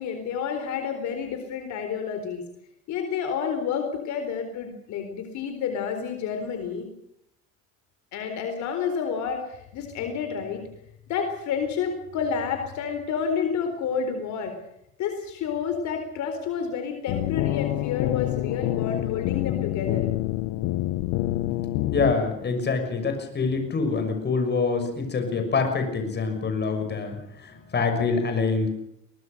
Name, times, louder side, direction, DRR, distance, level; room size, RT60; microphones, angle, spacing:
voice 1, 0.0-2.4 2.9-6.9 8.1-10.6 11.1-14.5 15.0-20.0, left 7 dB, 70° left, 6 dB, 4.2 m, -29 dB
sound 1, 17.1-22.1, left 16 dB, 90° left, 1.1 m, -27 dB
voice 2, 21.9-27.1 27.4-28.7, left 4 dB, 35° left, 6 dB, 6.3 m, -25 dB
23.0 x 19.5 x 6.7 m, 0.77 s
cardioid pair, 105°, 30 cm